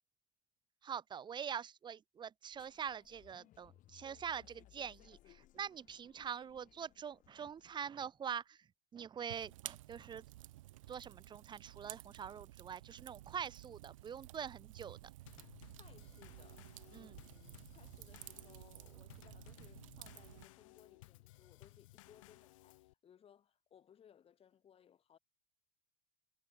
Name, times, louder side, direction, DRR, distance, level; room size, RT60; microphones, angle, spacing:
voice 1, 0.8-8.6 8.9-10.2 10.9-15.0 16.9-17.1, right 8 dB, 30° right, 0.7 m, -44 dB
sound 1, 2.5-8.1, left 14 dB, 50° left, 6.1 m, -65 dB
Fire, 9.3-20.5, right 16 dB, 85° right, 1.0 m, -54 dB
Drum kit / Snare drum / Bass drum, 15.3-22.9, left 19 dB, 80° left, 2.0 m, -60 dB
voice 2, 15.7-25.2, left 9 dB, 35° left, 3.8 m, -65 dB
hypercardioid pair, 95°, 16 cm